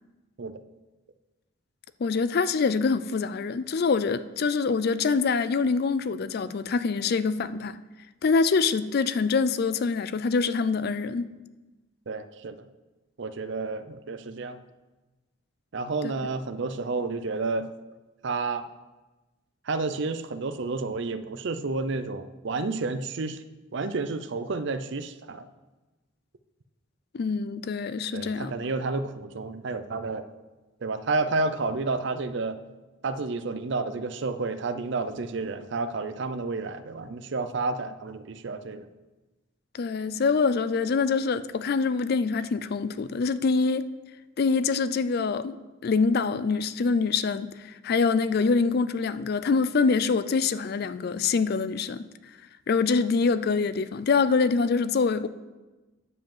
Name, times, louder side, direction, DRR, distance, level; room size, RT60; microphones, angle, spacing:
voice 1, 2.0-7.8 8.2-11.3 16.0-16.1 27.1-28.5 39.7-43.9 44.4-45.6 45.8-52.1 52.7-55.3, left 4 dB, 50° left, 14 dB, 0.4 m, -25 dB
voice 2, 12.1-12.6 13.2-14.6 15.7-17.7 18.2-18.7 19.7-23.4 23.7-25.5 28.1-30.3 30.8-32.6 33.0-38.9, right 3 dB, 60° right, 12 dB, 0.5 m, -30 dB
9.7 x 5.1 x 7.2 m, 1.2 s
head